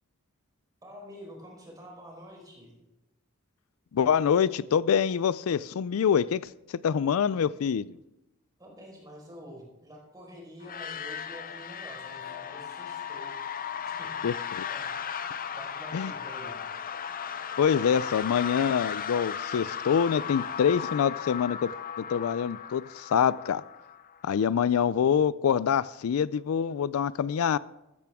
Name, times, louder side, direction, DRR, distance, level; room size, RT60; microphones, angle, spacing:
voice 1, 0.8-2.8 8.6-13.4 14.0-14.9 15.5-16.6, equal, 20° right, 4.5 m, -47 dB
voice 2, 3.9-8.0 14.2-14.7 15.9-16.1 17.6-21.7 22.0-23.6 24.2-27.6, left 7 dB, 75° left, 0.4 m, -25 dB
sound 1, 10.6-24.3, left 8 dB, 40° left, 0.7 m, -36 dB
15.0 x 13.5 x 3.6 m
head